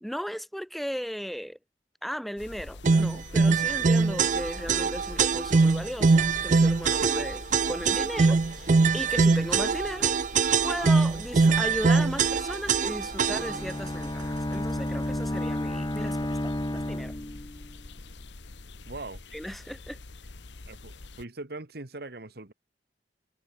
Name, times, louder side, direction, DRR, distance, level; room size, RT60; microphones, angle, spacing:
voice 1, 0.0-1.6 2.0-10.1 10.6-17.1 19.3-20.0, equal, ahead, 1.7 m, -36 dB
sound 1, 2.4-21.3, left 2 dB, 80° left, 1.2 m, -45 dB
sound 2, 2.8-13.7, right 4 dB, 45° right, 0.5 m, -23 dB
Bowed string instrument, 13.1-17.8, left 1 dB, 25° left, 1.1 m, -32 dB
voice 2, 18.8-19.2 20.7-22.5, right 2 dB, 60° right, 1.6 m, -41 dB
head